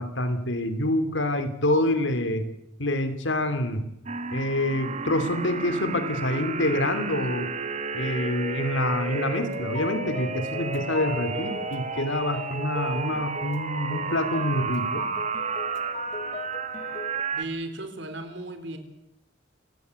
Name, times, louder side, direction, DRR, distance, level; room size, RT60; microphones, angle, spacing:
voice 1, 0.0-2.5 2.8-3.8 4.3-7.5 7.9-15.1, left 1 dB, 85° left, 10 dB, 3.0 m, -26 dB
sound 1, 4.1-17.4, right 5 dB, 40° right, 1.5 m, -32 dB
sound 2, 9.1-17.2, left 2 dB, 40° left, 1.2 m, -38 dB
voice 2, 17.3-18.8, right 2 dB, 70° right, 8 dB, 4.1 m, -35 dB
28.0 x 16.5 x 8.3 m, 0.85 s
head